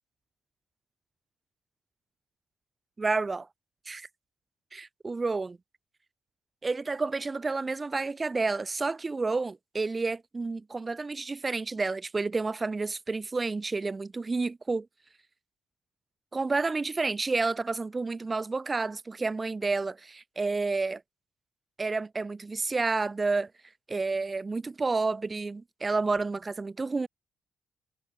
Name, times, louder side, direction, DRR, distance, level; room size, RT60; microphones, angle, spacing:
voice 1, 3.0-3.5 3.9-4.1 4.7-5.6 6.6-14.9 16.3-21.0 21.8-23.5 23.9-27.1, right 3 dB, 25° right, 4.8 m, -30 dB
cardioid pair, 90°, 0 cm